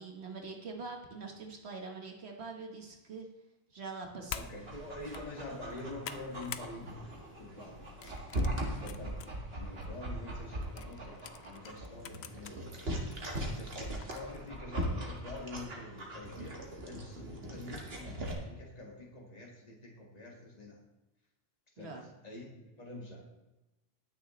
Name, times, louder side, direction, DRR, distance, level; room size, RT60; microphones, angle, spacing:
voice 1, 0.0-3.3 3.7-4.5 21.8-22.0, right 4 dB, 85° right, 2 dB, 1.6 m, -44 dB
sound 1, 4.3-4.5 5.0-5.2 5.6-6.7 7.1-7.4 8.0-9.3 9.8-9.9 10.8-12.6 13.1-13.2 14.0-14.4, left 9 dB, 85° left, 0.9 m, -45 dB
voice 2, 4.3-7.0 7.4-7.9 8.7-12.8 13.1-16.6 16.8-20.8 21.8-22.0 22.2-23.3, left 2 dB, 40° left, -2 dB, 2.1 m, -46 dB
Dog, 4.6-18.3, right 1 dB, 70° right, 2.1 m, -40 dB
20.0 x 6.7 x 3.2 m, 0.99 s
omnidirectional pair, 1.1 m